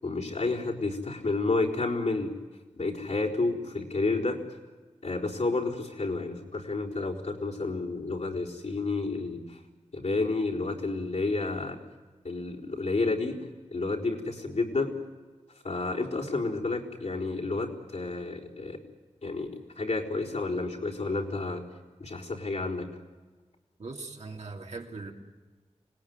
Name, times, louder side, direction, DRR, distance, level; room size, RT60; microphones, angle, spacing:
voice 1, 0.0-2.3 2.8-4.4 5.0-9.6 9.9-11.8 12.2-13.4 13.7-14.9 15.6-18.8 19.2-19.5 19.8-21.6 22.0-22.9, left 3 dB, 75° left, -3 dB, 4.2 m, -30 dB
voice 2, 23.8-25.1, right 3 dB, 70° right, 0 dB, 2.7 m, -40 dB
26.0 x 19.0 x 9.5 m, 1.3 s
wide cardioid pair, 60°, 12 cm